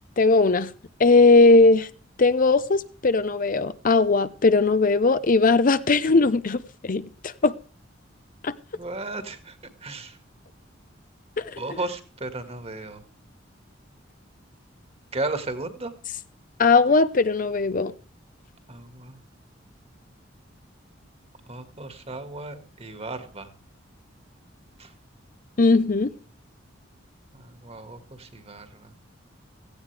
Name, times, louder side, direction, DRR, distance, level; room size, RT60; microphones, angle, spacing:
voice 1, 0.2-0.7 1.0-1.9 2.2-7.5 8.4-8.5 11.4-11.8 16.6-17.9 25.6-26.1, left 3 dB, 45° left, 0.7 m, -19 dB
voice 2, 8.8-9.6 9.8-10.1 11.6-13.0 15.1-15.9 18.7-19.2 21.5-23.5 24.8-24.9 27.3-28.9, right 2 dB, 35° right, 1.9 m, -34 dB
17.0 x 14.5 x 3.4 m
head